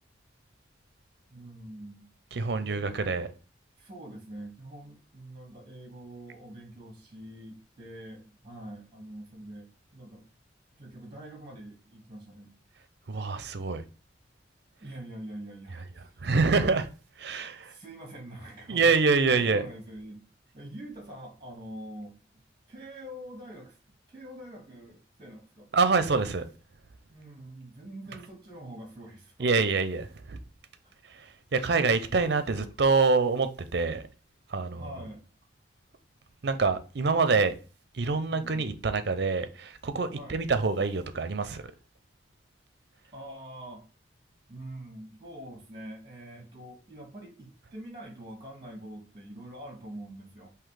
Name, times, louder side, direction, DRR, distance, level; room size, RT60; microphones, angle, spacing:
voice 1, 1.3-2.1 2.6-3.2 3.8-10.3 10.8-12.6 14.8-16.2 17.7-18.8 19.3-20.2 20.5-22.2 22.7-23.8 24.1-25.7 27.1-29.5 30.8-30.9 34.7-35.3 38.3-38.6 40.1-40.4 43.1-43.9 44.5-50.5, right 1 dB, 25° right, 1.3 m, -45 dB
voice 2, 2.3-3.3 13.1-13.8 16.2-16.9 17.2-17.7 18.7-19.6 25.7-26.4 29.4-30.4 31.5-34.0 34.5-34.8 36.4-37.5 37.9-41.6, right 4 dB, 60° right, 0.5 m, -26 dB
3.9 x 2.8 x 4.7 m
head